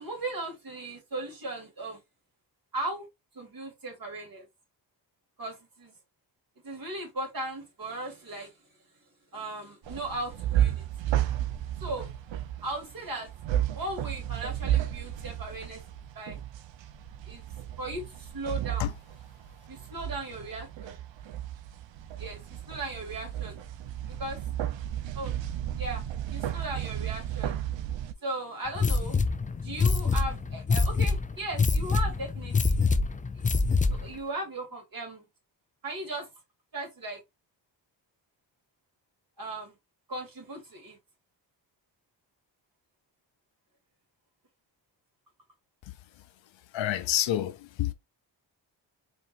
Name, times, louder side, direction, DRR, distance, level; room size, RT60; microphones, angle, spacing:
voice 1, 0.0-2.0 2.7-3.1 3.3-4.4 5.4-5.9 6.6-8.5 9.3-10.8 11.8-12.1 12.6-13.3 13.7-15.8 16.2-16.4 17.3-17.4 17.8-18.9 19.7-20.9 22.2-23.5 24.2-24.4 25.1-25.4 25.8-26.0 26.3-27.5 28.2-29.2 29.6-32.8 33.9-35.3 35.8-36.3 36.7-37.2 39.4-39.7 40.1-41.0, right 2 dB, 45° right, 2.4 m, -37 dB
sound 1, 9.8-28.1, right 11 dB, 70° right, 0.7 m, -33 dB
sound 2, 28.7-34.2, left 4 dB, 20° left, 0.4 m, -26 dB
voice 2, 45.8-47.9, left 12 dB, 75° left, 0.6 m, -30 dB
4.3 x 2.9 x 2.5 m
supercardioid pair, 55°, 46 cm